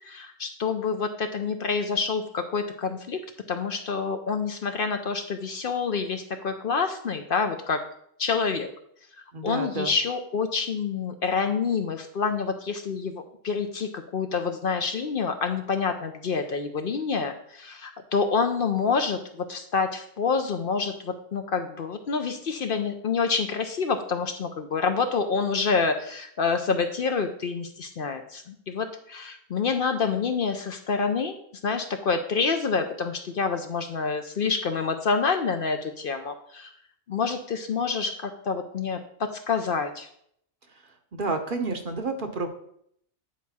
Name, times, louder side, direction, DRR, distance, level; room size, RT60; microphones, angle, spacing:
voice 1, 0.0-3.2 3.5-7.8 8.2-8.7 9.4-31.3 31.6-36.7 37.1-40.1, left 5 dB, 55° left, 7 dB, 0.8 m, -27 dB
voice 2, 9.3-9.9 41.1-42.5, right 3 dB, 50° right, 5 dB, 0.9 m, -30 dB
9.4 x 4.7 x 4.2 m, 0.68 s
omnidirectional pair, 1.2 m